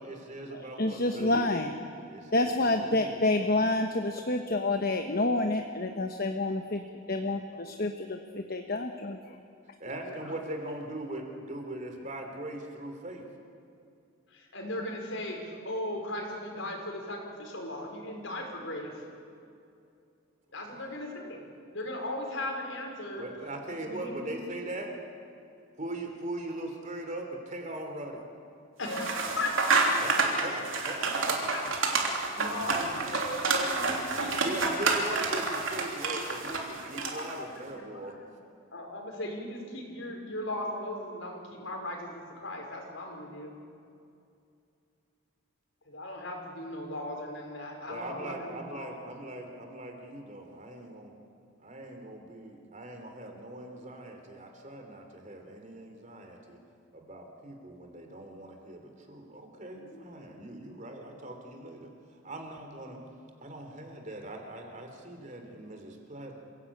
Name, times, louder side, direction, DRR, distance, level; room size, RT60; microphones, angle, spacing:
voice 1, 0.0-1.7 2.1-3.2 9.8-13.3 20.7-21.0 23.1-24.9 25.8-28.3 29.7-31.8 32.0-32.5 34.4-38.2 47.9-51.1 51.6-56.6 56.9-61.9 62.2-63.0 63.4-66.3, right 1 dB, 35° right, 3 dB, 3.2 m, -40 dB
voice 2, 0.5-1.7 2.3-9.4, left 2 dB, 45° left, 5 dB, 1.0 m, -29 dB
voice 3, 10.0-10.3 14.3-19.0 20.5-23.3 23.7-24.4 28.8-29.9 31.2-31.7 32.4-34.7 36.8-38.2 38.7-43.5 45.8-48.9 59.7-60.6, left 1 dB, 70° left, 1 dB, 5.0 m, -38 dB
sound 1, 28.9-37.4, right 3 dB, 70° right, 3.3 m, -29 dB
28.0 x 17.0 x 8.6 m, 2.5 s
head